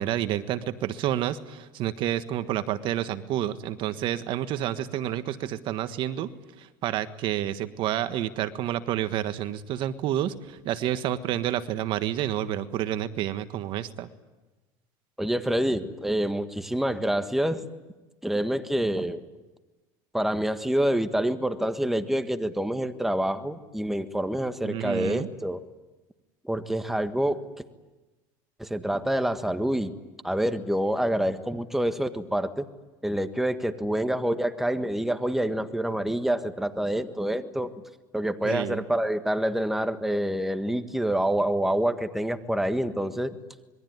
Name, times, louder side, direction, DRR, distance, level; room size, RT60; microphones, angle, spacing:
voice 1, 0.0-6.3 6.6-14.1 24.6-25.3 38.4-38.8, right 12 dB, 55° right, 11 dB, 1.4 m, -29 dB
voice 2, 15.2-17.6 18.2-19.2 20.1-25.6 26.4-27.4 28.6-29.9 30.2-32.7 33.0-37.7 38.1-43.4, right 1 dB, 5° right, 9 dB, 1.5 m, -27 dB
26.5 x 22.0 x 9.5 m, 1.1 s
supercardioid pair, 115°, 10 cm